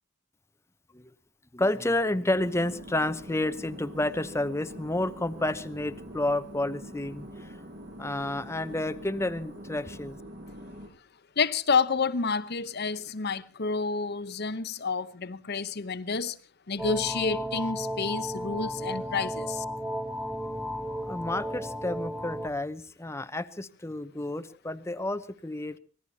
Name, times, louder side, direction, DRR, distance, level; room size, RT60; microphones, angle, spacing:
voice 1, 1.5-7.5 8.0-10.2 21.0-25.8, left 1 dB, 15° left, 0.8 m, -30 dB
sound 1, 2.3-10.9, equal, 60° right, 6.9 m, -44 dB
voice 2, 11.4-16.4 16.7-19.6, left 4 dB, 55° left, 0.9 m, -29 dB
sound 2, 16.8-22.5, equal, 5° right, 1.3 m, -34 dB
25.5 x 19.0 x 2.9 m
head